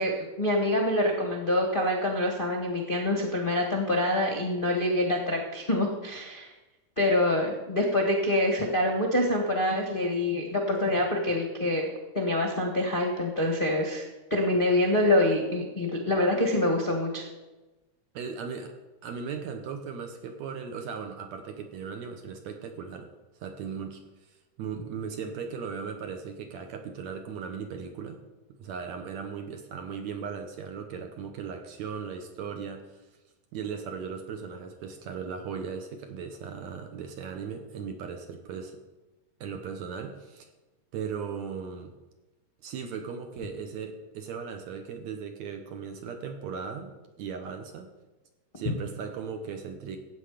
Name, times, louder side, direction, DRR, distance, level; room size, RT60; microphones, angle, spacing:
voice 1, 0.0-6.5 7.0-11.9 12.1-14.0 14.3-17.2, left 1 dB, 45° left, 0 dB, 0.6 m, -26 dB
voice 2, 18.1-18.7 19.0-23.1 23.4-24.0 24.6-28.2 28.6-32.8 33.5-38.8 39.4-40.5 40.9-41.9 42.6-47.9 48.6-50.0, right 6 dB, 70° right, 6 dB, 1.8 m, -37 dB
15.0 x 8.8 x 5.0 m, 1.1 s
omnidirectional pair, 4.0 m